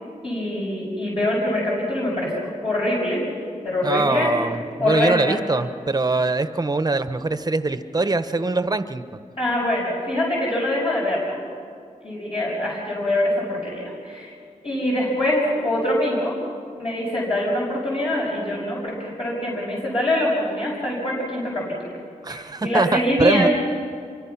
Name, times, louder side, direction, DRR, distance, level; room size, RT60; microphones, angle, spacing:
voice 1, 0.2-3.2 3.6-4.3 4.8-5.4 9.4-11.4 12.0-14.3 14.6-16.3 16.8-21.8 22.3-23.5, left 1 dB, 45° left, -5 dB, 6.3 m, -24 dB
voice 2, 3.8-9.2 22.2-23.5, right 3 dB, 30° right, 10 dB, 1.0 m, -23 dB
27.0 x 24.0 x 5.9 m, 2.4 s
wide cardioid pair, 100°, 14 cm